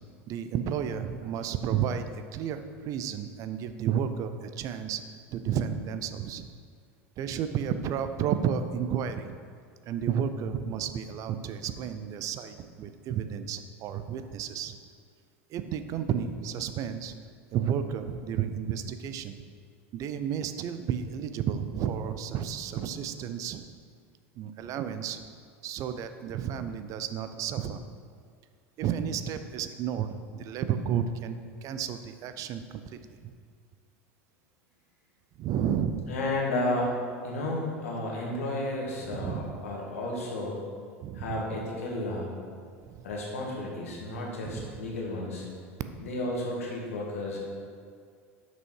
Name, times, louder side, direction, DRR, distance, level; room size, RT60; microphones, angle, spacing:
voice 1, 0.3-2.0 2.3-5.0 5.3-6.5 7.2-9.4 9.9-14.8 15.5-17.2 17.5-19.4 19.9-23.7 24.4-25.3 25.6-27.8 28.8-33.3 35.4-36.1 39.1-39.5 41.0-41.6 42.9-43.0 44.5-44.8, right 8 dB, 50° right, 10 dB, 0.5 m, -32 dB
voice 2, 36.1-36.9 37.2-40.6 41.1-42.3 43.0-45.5 46.0-47.4, left 2 dB, 80° left, -2 dB, 1.6 m, -32 dB
6.2 x 5.3 x 4.7 m, 2.1 s
hypercardioid pair, 85°, 7 cm